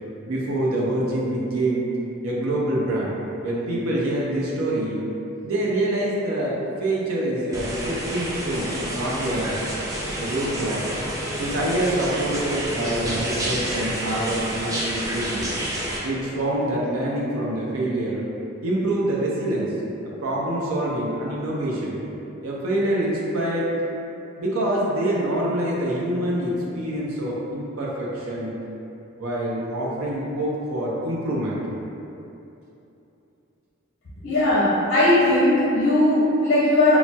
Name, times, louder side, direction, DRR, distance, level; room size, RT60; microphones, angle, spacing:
voice 1, 0.3-1.9 2.2-3.2 3.4-5.0 5.4-9.5 10.2-10.9 11.4-15.5 16.0-18.2 18.6-19.7 20.2-22.0 22.4-23.7 24.4-28.6 29.2-31.6, right 1 dB, 80° right, -5 dB, 0.6 m, -25 dB
sound 1, 7.5-16.0, right 1 dB, 15° right, 0.3 m, -29 dB
voice 2, 34.2-37.0, left 1 dB, 45° left, -8 dB, 0.5 m, -18 dB
4.1 x 2.0 x 2.2 m, 2.9 s
head